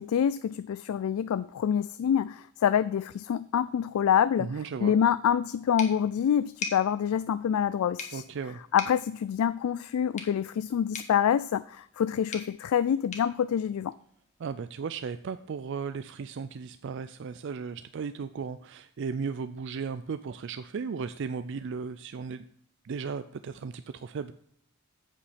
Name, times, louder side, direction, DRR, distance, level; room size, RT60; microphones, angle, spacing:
voice 1, 0.0-4.5 4.8-8.2 8.7-13.9, left 8 dB, 80° left, 15 dB, 0.3 m, -26 dB
voice 2, 4.4-5.0 8.1-8.6 14.4-22.4 22.8-24.3, right 5 dB, 55° right, 11 dB, 0.4 m, -36 dB
sound 1, 5.8-14.5, left 4 dB, 35° left, 1.4 m, -44 dB
8.3 x 7.8 x 5.0 m, 0.67 s
head